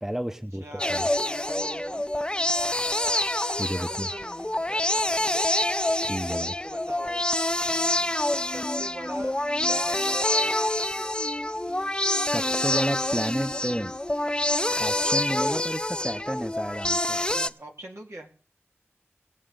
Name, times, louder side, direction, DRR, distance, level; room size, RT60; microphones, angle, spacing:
voice 1, 0.0-1.1 2.6-2.7 3.6-4.1 6.0-6.6 11.8-12.0 12.2-13.9 14.8-17.2, equal, 10° right, 9 dB, 0.7 m, -31 dB
voice 2, 0.6-2.0 3.7-5.5 6.6-7.2 7.6-8.1 8.5-10.5 17.3-18.3, right 1 dB, 90° right, 0 dB, 2.1 m, -42 dB
sound 1, 0.8-17.5, left 1 dB, 20° left, 0.5 m, -27 dB
19.5 x 7.6 x 3.8 m, 0.39 s
wide cardioid pair, 45°, 5 cm